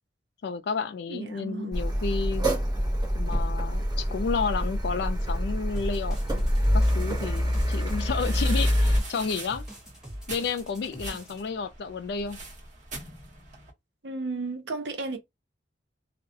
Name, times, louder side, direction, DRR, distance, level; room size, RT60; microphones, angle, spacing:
voice 1, 0.4-2.5 3.1-6.5 6.7-9.6 10.3-12.4, left 5 dB, 70° left, 0.3 m, -31 dB
voice 2, 1.1-1.7 14.0-15.2, right 3 dB, 75° right, 0.6 m, -33 dB
Car, 1.7-9.0, equal, 25° right, 0.7 m, -26 dB
sound 1, 5.7-11.4, equal, 5° right, 1.2 m, -43 dB
sound 2, 6.8-13.7, right 3 dB, 45° right, 1.0 m, -43 dB
2.3 x 2.1 x 2.7 m
head